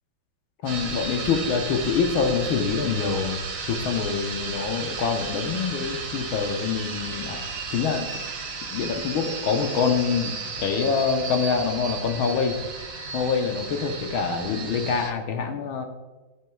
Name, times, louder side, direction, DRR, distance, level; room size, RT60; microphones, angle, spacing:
voice 1, 0.6-3.4 3.7-7.4 7.7-8.1 8.7-10.3 10.6-12.6 13.1-15.8, left 5 dB, 80° left, 4 dB, 1.7 m, -25 dB
sound 1, 0.7-15.1, right 4 dB, 75° right, 1.8 m, -34 dB
12.0 x 6.6 x 2.3 m, 1.2 s
omnidirectional pair, 2.2 m